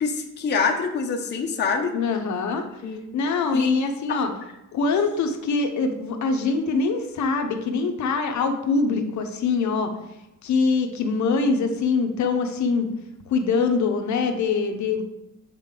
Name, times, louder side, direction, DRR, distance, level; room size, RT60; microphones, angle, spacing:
voice 1, 0.0-1.9 2.8-3.0 3.5-3.8 4.1-4.2, left 5 dB, 30° left, 3 dB, 0.7 m, -25 dB
voice 2, 1.9-2.6 3.1-4.3 4.7-9.9 10.4-12.9 13.3-15.0, left 4 dB, 60° left, 6 dB, 0.8 m, -23 dB
7.3 x 5.2 x 3.8 m, 0.90 s
cardioid pair, 150°, 33 cm